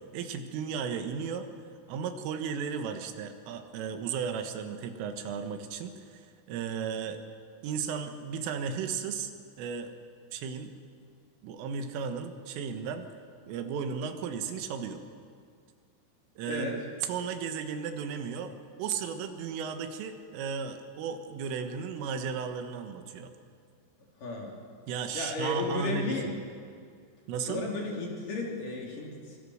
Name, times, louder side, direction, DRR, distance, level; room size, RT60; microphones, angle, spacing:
voice 1, 0.0-1.5 1.9-7.2 7.6-9.3 9.6-9.9 10.3-10.7 11.4-13.1 13.5-15.0 16.4-16.8 17.1-18.5 18.8-23.3 24.9-26.4 27.3-27.6, right 6 dB, 90° right, 7 dB, 4.1 m, -35 dB
voice 2, 24.2-24.5 25.1-26.3 27.4-29.4, left 2 dB, 45° left, -1 dB, 4.5 m, -34 dB
25.0 x 23.0 x 6.5 m, 2.2 s
omnidirectional pair, 5.6 m